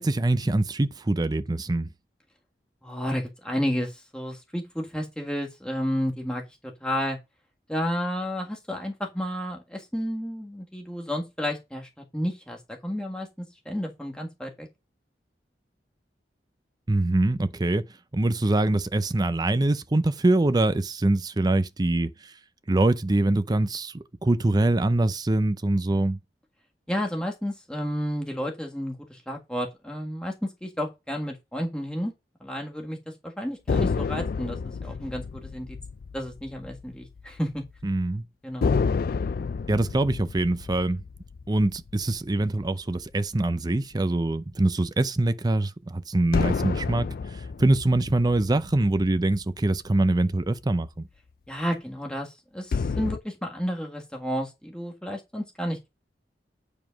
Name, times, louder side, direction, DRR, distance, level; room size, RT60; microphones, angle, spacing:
voice 1, 0.0-1.9 16.9-17.8 18.1-22.3 22.7-26.2 37.8-38.2 39.7-41.0 41.5-47.1 47.6-51.1, right 2 dB, 25° right, 0.5 m, -24 dB
voice 2, 2.8-6.4 6.8-7.2 7.7-14.7 26.9-32.1 32.4-33.0 33.2-35.8 36.1-37.6 38.4-38.7 51.5-55.9, equal, 5° left, 1.6 m, -31 dB
sound 1, 33.7-37.4 37.7-37.8 38.6-43.2 46.3-49.9 52.7-53.2, left 5 dB, 55° left, 0.4 m, -30 dB
9.5 x 5.0 x 5.2 m
head